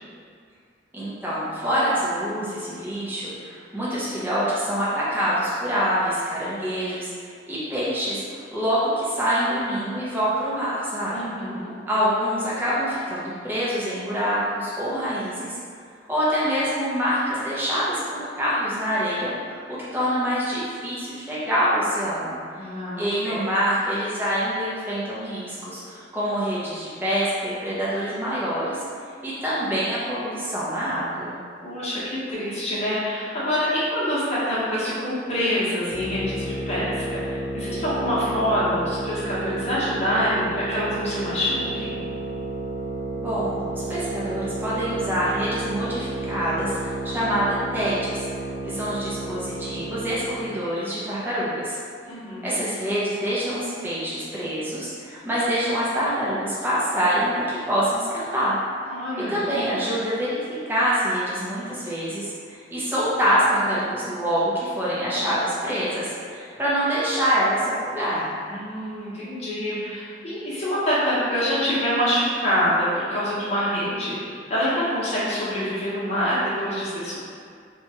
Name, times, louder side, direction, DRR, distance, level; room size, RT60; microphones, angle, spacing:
voice 1, 0.9-7.1 7.5-11.3 11.9-15.6 16.1-22.3 23.0-28.8 29.2-31.3 43.2-48.2 48.6-51.8 52.4-58.6 59.3-60.3 60.7-68.4, equal, 10° right, -9 dB, 0.5 m, -25 dB
voice 2, 11.1-11.7 22.5-23.4 31.6-42.0 52.1-52.5 58.9-59.8 68.5-77.2, equal, 35° left, -9 dB, 0.9 m, -26 dB
sound 1, 35.9-50.5, right 2 dB, 70° left, 0.5 m, -31 dB
2.9 x 2.2 x 2.8 m, 2.2 s
head